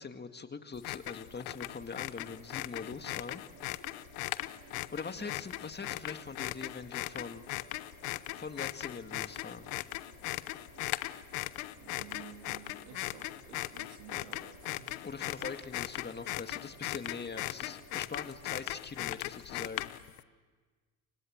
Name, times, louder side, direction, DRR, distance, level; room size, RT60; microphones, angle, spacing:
voice 1, 0.0-3.4 4.9-7.4 8.4-9.7 15.0-19.9, left 5 dB, 25° left, 8 dB, 2.0 m, -42 dB
sound 1, 0.7-20.2, left 19 dB, 80° left, 0.9 m, -39 dB
sound 2, 1.3-18.7, right 8 dB, 60° right, 3.2 m, -60 dB
voice 2, 11.8-15.0, right 8 dB, 85° right, 6 dB, 2.0 m, -52 dB
29.0 x 24.0 x 8.0 m, 1.4 s
supercardioid pair, 75°, 40 cm